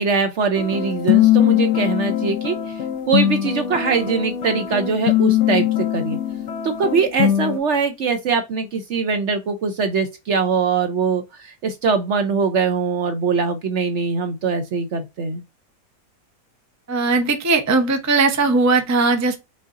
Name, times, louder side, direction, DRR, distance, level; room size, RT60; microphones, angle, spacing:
voice 1, 0.0-2.8 3.1-5.7 5.9-6.2 6.6-15.4, right 5 dB, 60° right, 0.7 m, -22 dB
sound 1, 0.6-7.6, left 11 dB, 65° left, 0.7 m, -21 dB
voice 2, 16.9-19.4, right 3 dB, 25° right, 0.3 m, -18 dB
5.5 x 3.8 x 2.5 m
omnidirectional pair, 1.8 m